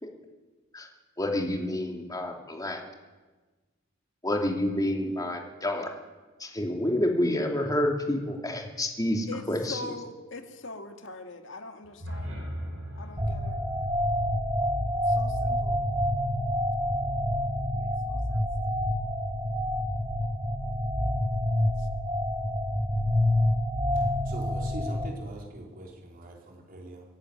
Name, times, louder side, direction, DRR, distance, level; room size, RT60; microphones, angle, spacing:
voice 1, 1.2-2.8 4.2-5.9 6.4-9.8, left 1 dB, 20° left, 2 dB, 2.8 m, -28 dB
voice 2, 9.3-12.4 13.0-13.6 15.1-15.8 17.8-18.9 21.8-21.9, left 2 dB, 65° left, 6 dB, 2.1 m, -43 dB
sound 1, 11.8-15.9, equal, 85° right, 4.7 m, -40 dB
sound 2, 13.2-25.1, left 1 dB, 15° right, 1.6 m, -27 dB
voice 3, 24.0-27.0, right 1 dB, 45° right, -1 dB, 4.3 m, -42 dB
24.0 x 11.0 x 10.0 m, 1.3 s
head